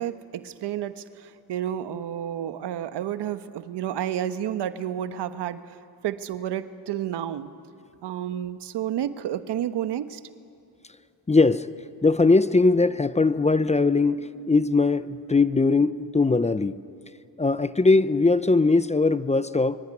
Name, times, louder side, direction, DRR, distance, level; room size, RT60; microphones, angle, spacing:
voice 1, 0.0-5.6 6.0-7.5 8.0-10.2, right 10 dB, 75° right, 11 dB, 1.3 m, -30 dB
voice 2, 11.3-11.7 12.0-16.8 17.4-19.8, left 3 dB, 15° left, 14 dB, 0.7 m, -20 dB
25.0 x 24.0 x 9.7 m, 2.8 s
cardioid pair, 100°, 42 cm